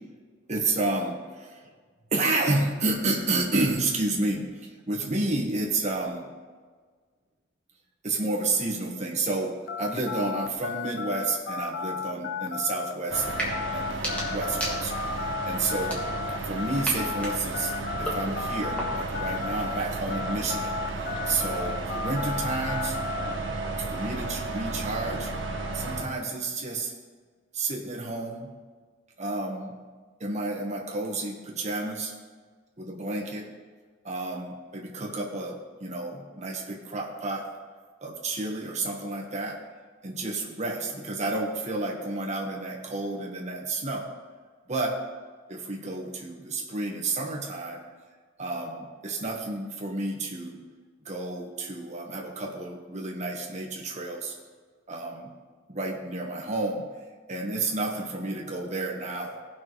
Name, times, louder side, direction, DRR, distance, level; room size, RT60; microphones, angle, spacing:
voice 1, 0.5-1.7 2.1-6.3 8.0-16.0 16.4-17.7 18.0-20.7 21.3-23.0 23.9-25.3 25.7-26.9 27.5-28.5 29.2-29.7 30.2-32.1 32.8-33.5 34.0-37.5 38.0-39.6 40.0-44.1 44.7-45.0 45.5-47.8 48.4-50.6 51.0-54.3 54.9-55.3 55.7-56.8 57.3-59.4, right 2 dB, 35° right, -1 dB, 1.4 m, -30 dB
sound 1, 9.7-19.8 20.1-23.4, left 5 dB, 50° left, 0.5 m, -34 dB
sound 2, 13.1-26.0, right 2 dB, 65° right, 1.2 m, -33 dB
sound 3, 13.3-13.5 13.9-15.2 15.8-16.4 16.8-19.2, equal, 5° left, 1.8 m, -36 dB
18.0 x 6.0 x 3.2 m, 1.5 s
head